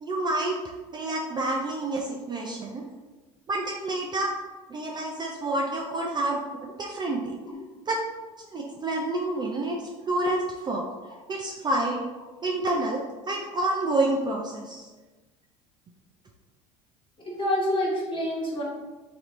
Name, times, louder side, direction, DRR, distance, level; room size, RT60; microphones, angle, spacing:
voice 1, 0.0-2.8 3.5-4.3 4.7-7.3 7.9-8.0 8.4-9.8 10.1-10.8 11.3-12.0 12.4-14.9, right 2 dB, 25° right, 0 dB, 0.4 m, -28 dB
voice 2, 17.2-18.6, left 1 dB, 30° left, -4 dB, 1.2 m, -27 dB
3.2 x 2.8 x 2.5 m, 1.2 s
hypercardioid pair, 85°, 17 cm